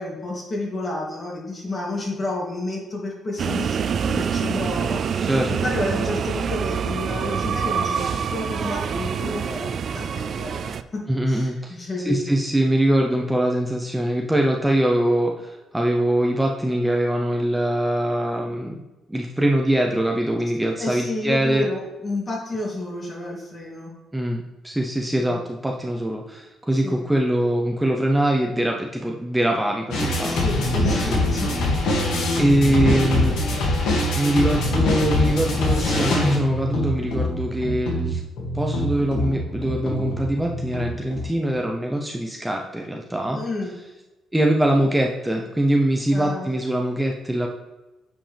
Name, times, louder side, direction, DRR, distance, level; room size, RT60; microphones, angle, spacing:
voice 1, 0.0-11.0 11.3-12.4 20.8-23.9 25.2-25.4 26.7-27.0 30.2-31.5 32.2-32.5 32.8-33.4 43.3-43.8 46.1-46.5, left 2 dB, 35° left, -3 dB, 2.6 m, -31 dB
sound 1, 3.4-10.8, right 7 dB, 55° right, 0.3 m, -26 dB
voice 2, 11.1-18.8 19.1-21.7 24.1-30.4 31.0-31.2 32.4-33.3 34.2-38.2 38.5-43.4 44.3-47.5, right 1 dB, 5° right, 1 dB, 0.7 m, -23 dB
sound 2, 29.9-41.3, left 1 dB, 85° left, 2.2 m, -23 dB
8.8 x 5.0 x 3.4 m, 1.1 s
cardioid pair, 90°, 0 cm